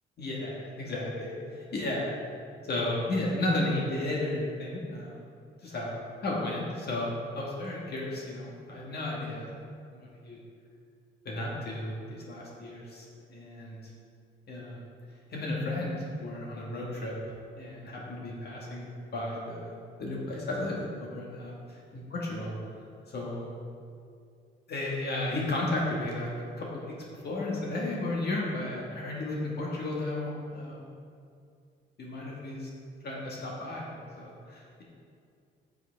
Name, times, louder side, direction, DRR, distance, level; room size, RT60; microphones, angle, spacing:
voice 1, 0.2-2.1 2.6-5.2 5.6-5.9 6.2-9.5 9.9-10.4 11.2-13.8 14.5-14.9 15.3-17.1 17.6-18.9 19.1-19.7 20.0-21.5 22.1-22.5 23.1-23.5 24.7-26.3 26.6-26.9 27.2-30.8 32.0-32.7 33.0-34.8, left 2 dB, 55° left, -4 dB, 1.5 m, -33 dB
8.1 x 6.7 x 3.4 m, 2.3 s
cardioid pair, 90°, 20 cm